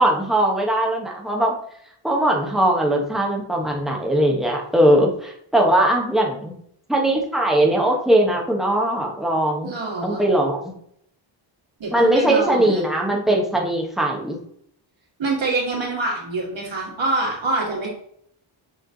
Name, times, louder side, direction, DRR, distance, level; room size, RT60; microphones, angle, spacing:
voice 1, 0.0-1.6 2.0-6.5 6.9-9.7 10.0-10.7 11.9-14.4, right 1 dB, ahead, -1 dB, 0.9 m, -20 dB
voice 2, 9.6-10.2 11.8-12.8 15.2-17.9, right 2 dB, 65° right, -4 dB, 2.3 m, -25 dB
7.6 x 3.3 x 3.9 m, 0.69 s
wide cardioid pair, 175°, 49 cm